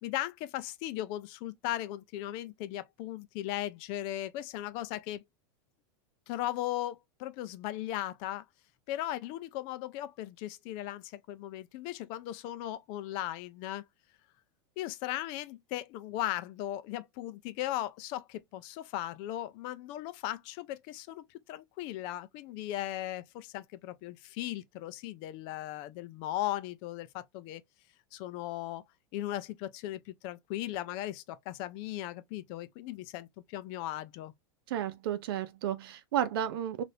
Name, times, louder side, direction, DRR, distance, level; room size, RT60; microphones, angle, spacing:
voice 1, 0.0-5.2 6.3-8.4 8.9-13.8 14.8-27.6 28.1-28.8 29.1-34.3, left 14 dB, 40° left, 0.4 m, -37 dB
voice 2, 34.7-36.8, right 10 dB, 70° right, 0.7 m, -32 dB
3.3 x 2.5 x 2.7 m
supercardioid pair, 165°, 13 cm